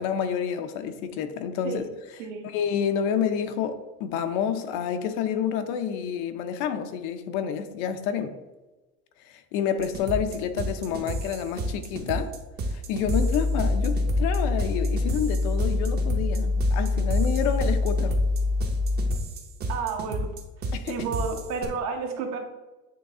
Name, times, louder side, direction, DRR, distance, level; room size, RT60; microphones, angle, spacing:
voice 1, 0.0-1.9 2.4-8.3 9.3-12.3 12.7-18.2 20.7-21.0, left 8 dB, 75° left, 0.7 m, -29 dB
sound 1, 9.8-21.6, right 1 dB, 30° right, 0.8 m, -32 dB
sound 2, 13.0-19.2, left 3 dB, 10° right, 0.4 m, -25 dB
voice 2, 19.7-20.3 20.9-22.5, right 5 dB, 55° right, 1.0 m, -31 dB
8.8 x 3.2 x 3.7 m
cardioid pair, 150°, 32 cm